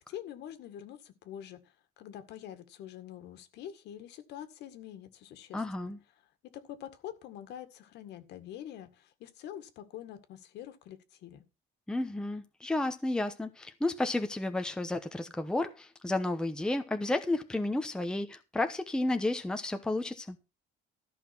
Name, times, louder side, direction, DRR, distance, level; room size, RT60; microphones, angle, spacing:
voice 1, 0.1-1.6 2.0-5.9 6.5-11.4, left 10 dB, 65° left, 1.9 m, -45 dB
voice 2, 5.5-6.0 11.9-20.4, left 2 dB, 5° left, 0.9 m, -32 dB
14.0 x 5.9 x 6.0 m
cardioid pair, 160°, 19 cm